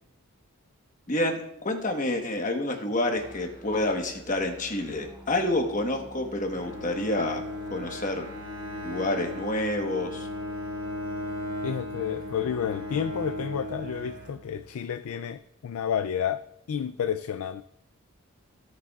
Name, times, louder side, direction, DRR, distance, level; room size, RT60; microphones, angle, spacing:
voice 1, 1.1-7.4 7.7-8.3 8.8-10.3, left 1 dB, 35° left, 1.2 m, -28 dB
Musical instrument, 3.1-14.7, right 1 dB, 10° right, 3.3 m, -49 dB
Bowed string instrument, 6.5-14.8, left 1 dB, 65° right, 2.4 m, -36 dB
voice 2, 11.6-17.6, left 8 dB, 80° left, 0.4 m, -30 dB
16.5 x 6.5 x 2.4 m
head